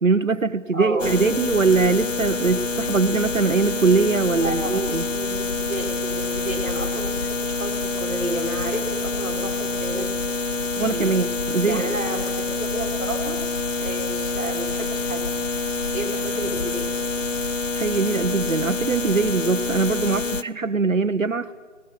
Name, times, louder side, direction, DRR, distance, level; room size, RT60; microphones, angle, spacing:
voice 1, 0.0-5.1 10.8-11.9 17.7-21.5, right 4 dB, 80° right, 12 dB, 1.1 m, -22 dB
voice 2, 0.7-1.2 4.4-4.8 5.1-10.1 10.8-11.1 11.6-13.4 13.8-15.3 15.9-16.9, right 2 dB, 10° right, -9 dB, 2.5 m, -31 dB
sound 1, 1.0-20.4, left 3 dB, 70° left, 1.0 m, -27 dB
24.5 x 19.5 x 7.6 m, 1.4 s
figure-of-eight pair, 175°, 39 cm